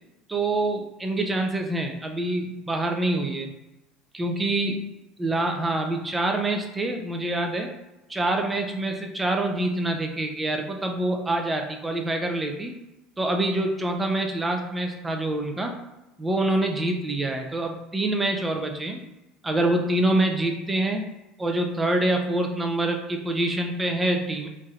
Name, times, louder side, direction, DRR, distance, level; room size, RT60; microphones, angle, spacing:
voice 1, 0.3-3.5 4.1-4.8 5.2-7.7 8.1-12.7 13.2-15.7 16.2-19.0 19.4-21.1 21.4-24.5, right 1 dB, 15° right, 3 dB, 0.5 m, -26 dB
3.2 x 2.7 x 2.4 m, 0.98 s
supercardioid pair, 90°, 0 cm